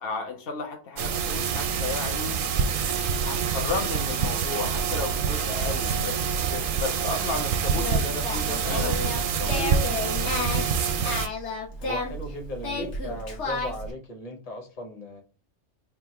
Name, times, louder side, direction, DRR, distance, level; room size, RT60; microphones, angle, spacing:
voice 1, 0.0-2.4 3.3-10.1 12.7-12.9, left 3 dB, 60° left, 0.8 m, -34 dB
sound 1, 1.0-11.3, right 6 dB, 60° right, 0.6 m, -26 dB
Singing, 7.7-13.9, left 2 dB, 75° left, 1.4 m, -32 dB
voice 2, 10.8-11.1 11.8-15.2, equal, 35° left, 1.0 m, -38 dB
3.5 x 2.4 x 4.3 m
omnidirectional pair, 1.2 m